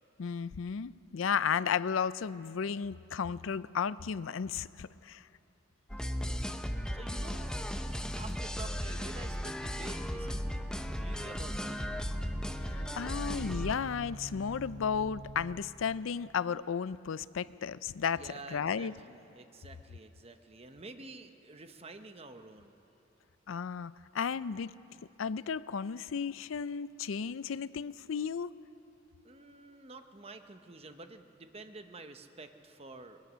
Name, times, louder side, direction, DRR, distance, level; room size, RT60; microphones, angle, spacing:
voice 1, 0.2-5.2 12.6-18.9 23.5-24.7 25.2-28.5, left 6 dB, 75° left, 17 dB, 0.5 m, -34 dB
sound 1, 5.9-13.7, equal, 5° left, 0.7 m, -36 dB
voice 2, 6.9-7.5 8.2-10.4 10.9-12.1 18.1-22.8 29.2-33.2, right 3 dB, 30° right, 7 dB, 0.9 m, -49 dB
sound 2, 10.2-15.5, right 1 dB, 85° right, 2.8 m, -47 dB
21.0 x 20.0 x 6.3 m, 2.9 s
head